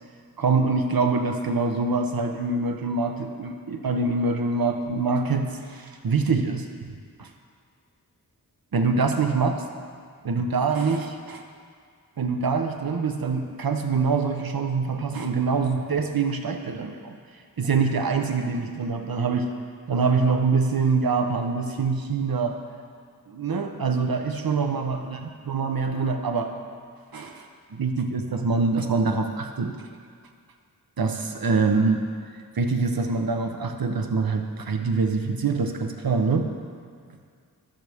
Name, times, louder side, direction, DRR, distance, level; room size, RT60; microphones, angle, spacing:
voice 1, 0.4-6.9 7.2-7.3 8.7-9.6 10.2-11.4 12.2-17.2 17.6-19.5 19.9-22.6 23.3-25.2 25.4-26.5 27.1-29.8 31.0-32.0 32.5-36.5, right 4 dB, 75° right, 5 dB, 1.0 m, -25 dB
21.0 x 7.9 x 3.5 m, 2.1 s
wide cardioid pair, 75°, 36 cm